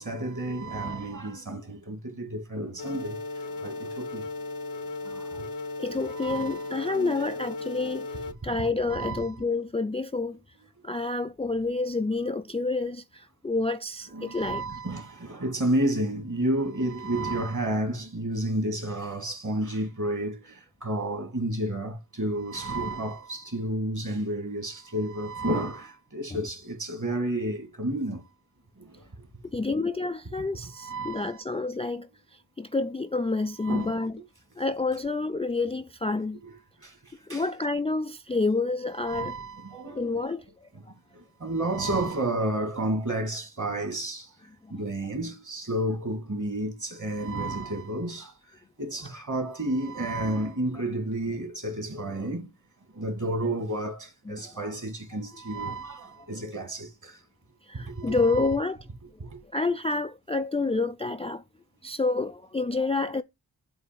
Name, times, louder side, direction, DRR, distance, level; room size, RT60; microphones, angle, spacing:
voice 1, 0.0-3.2 3.6-4.3 5.0-5.5 6.2-7.1 8.4-9.3 14.1-28.2 28.8-29.1 30.8-31.3 33.6-33.9 36.8-37.4 39.0-40.3 41.1-44.3 44.7-48.3 48.8-52.5 52.9-57.2 57.7-58.5 59.2-59.4, right 1 dB, 45° right, 2.2 m, -31 dB
sound 1, 2.8-8.3, left 3 dB, 75° left, 1.0 m, -36 dB
voice 2, 5.8-10.4 10.8-14.6 26.3-26.5 29.5-34.2 34.6-36.4 37.3-39.4 39.7-40.9 44.6-44.7 54.3-54.7 55.6-55.7 56.4-56.5 57.6-58.9 59.2-61.4 61.8-63.2, left 3 dB, 15° left, 0.4 m, -29 dB
8.0 x 2.8 x 5.9 m
wide cardioid pair, 55°, 41 cm